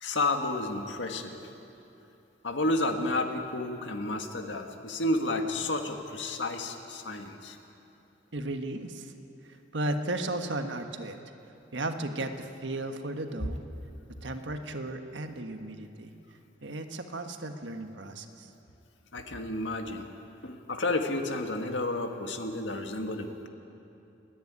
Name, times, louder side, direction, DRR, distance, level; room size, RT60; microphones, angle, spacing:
voice 1, 0.0-1.4 2.4-7.6 19.1-20.1 20.4-23.5, left 2 dB, 85° left, 5 dB, 1.7 m, -31 dB
voice 2, 8.3-9.1 9.4-11.2 11.7-13.6 14.2-16.1 16.6-18.5, right 2 dB, 80° right, 6 dB, 1.4 m, -35 dB
29.0 x 10.5 x 9.5 m, 2.8 s
head